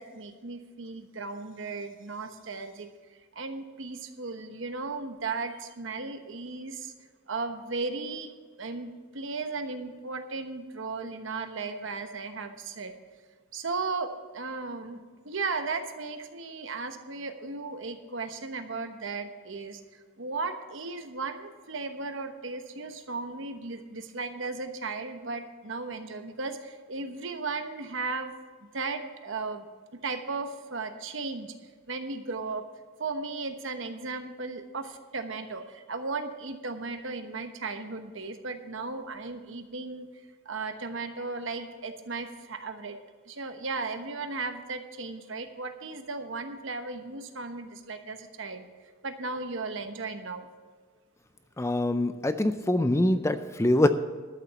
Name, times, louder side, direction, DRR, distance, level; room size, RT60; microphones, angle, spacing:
voice 1, 0.0-2.9 3.3-6.9 7.3-8.3 8.6-13.0 13.5-28.3 28.7-29.7 29.9-31.5 31.9-32.6 33.0-40.1 40.4-43.0 43.2-48.7 49.0-50.5, right 3 dB, 65° right, 7 dB, 1.1 m, -36 dB
voice 2, 51.6-53.9, left 1 dB, 15° left, 11 dB, 0.4 m, -24 dB
12.0 x 7.2 x 6.9 m, 1.5 s
head